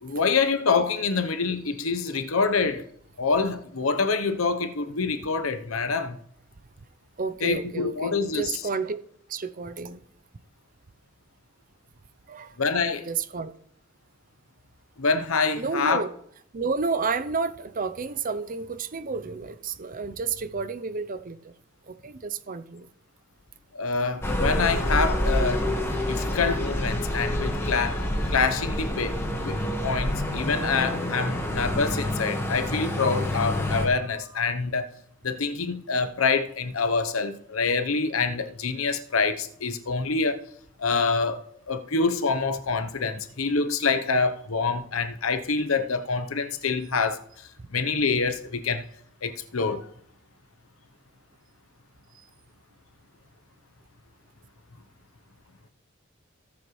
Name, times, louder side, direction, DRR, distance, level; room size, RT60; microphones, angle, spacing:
voice 1, 0.0-2.8 3.2-6.2 7.4-8.6 12.6-13.1 15.0-16.0 23.7-25.6 26.1-29.2 29.4-34.9 35.2-40.4 40.8-47.2 47.7-48.8 49.2-49.9, left 4 dB, 90° left, 0.9 m, -26 dB
voice 2, 7.2-9.0 9.3-10.0 12.3-12.5 13.0-13.5 15.6-16.1 16.5-21.4 21.9-22.9, right 4 dB, 40° right, 0.6 m, -31 dB
sound 1, 24.2-33.9, left 1 dB, 10° left, 1.6 m, -27 dB
18.5 x 7.2 x 3.2 m
head